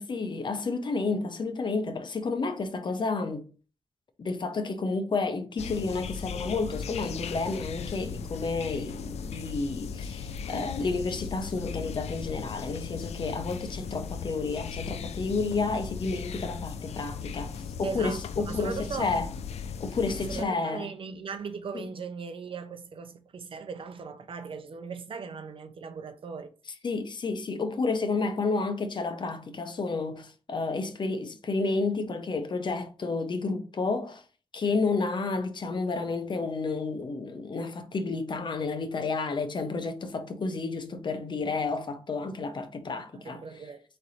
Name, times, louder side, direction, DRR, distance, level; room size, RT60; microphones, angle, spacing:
voice 1, 0.0-3.4 4.2-19.3 19.8-20.9 26.8-34.2 34.5-43.4, left 3 dB, 45° left, 0.7 m, -31 dB
sound 1, 5.6-20.4, left 6 dB, 80° left, 0.4 m, -37 dB
voice 2, 17.8-19.1 20.3-26.5 43.1-43.8, right 5 dB, 55° right, 0.6 m, -38 dB
4.0 x 3.3 x 4.1 m
wide cardioid pair, 100°, 11 cm